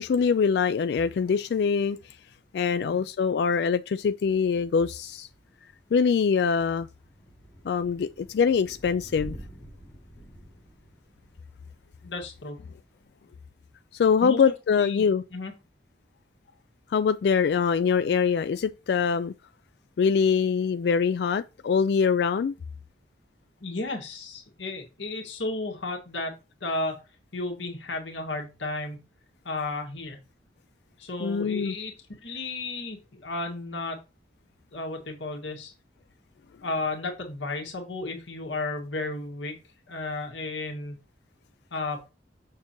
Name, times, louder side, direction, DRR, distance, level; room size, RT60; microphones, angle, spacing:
voice 1, 0.0-2.2 2.5-5.3 5.9-6.9 7.6-9.4 13.9-15.2 16.9-19.3 20.0-22.5 31.2-31.8, left 6 dB, 60° left, 0.3 m, -24 dB
Thunder / Rain, 4.8-13.0, right 1 dB, 10° left, 3.3 m, -48 dB
voice 2, 12.0-12.6 14.2-14.4 14.8-15.1 15.3-15.5 23.6-26.3 26.6-27.0 27.3-29.0 29.4-30.2 31.0-34.0 34.7-35.7 36.6-39.6 39.9-41.0 41.7-42.0, left 2 dB, 85° left, 2.0 m, -33 dB
7.1 x 6.6 x 3.0 m
head